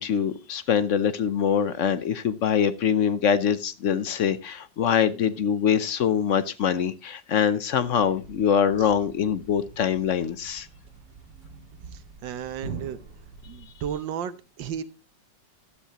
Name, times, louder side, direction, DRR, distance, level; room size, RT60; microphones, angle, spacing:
voice 1, 0.0-10.7, left 8 dB, 60° left, 13 dB, 0.8 m, -24 dB
Thump thud, 7.7-14.0, right 4 dB, 65° right, 2.5 m, -44 dB
voice 2, 11.9-13.0 13.5-14.8, right 8 dB, 85° right, 11 dB, 1.6 m, -34 dB
13.0 x 12.0 x 2.9 m, 0.29 s
omnidirectional pair, 2.0 m